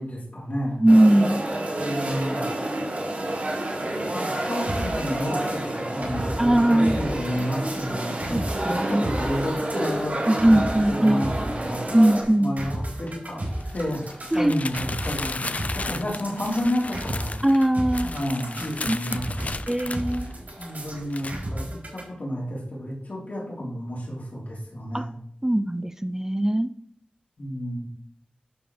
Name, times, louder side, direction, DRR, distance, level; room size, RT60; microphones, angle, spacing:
voice 1, 0.0-0.8 1.7-2.4 4.1-8.4 8.7-11.8 12.4-13.4 13.7-17.4 18.0-19.9 20.6-25.1 27.4-27.9, equal, 70° left, -5 dB, 3.8 m, -31 dB
voice 2, 0.8-1.4 6.4-7.0 7.7-7.9 8.3-9.1 10.3-11.3 11.9-12.5 14.3-14.5 17.4-18.1 18.9-19.0 19.7-20.4 24.9-25.1 25.4-26.7, right 1 dB, 15° right, 12 dB, 0.4 m, -20 dB
sound 1, 0.9-12.2, right 1 dB, 55° right, 2.9 m, -29 dB
sound 2, 4.7-22.0, right 1 dB, 75° right, 4.3 m, -34 dB
sound 3, 13.5-20.7 21.1-21.3, left 3 dB, 55° left, 0.4 m, -35 dB
11.0 x 4.5 x 5.0 m, 0.69 s
wide cardioid pair, 70°, 3 cm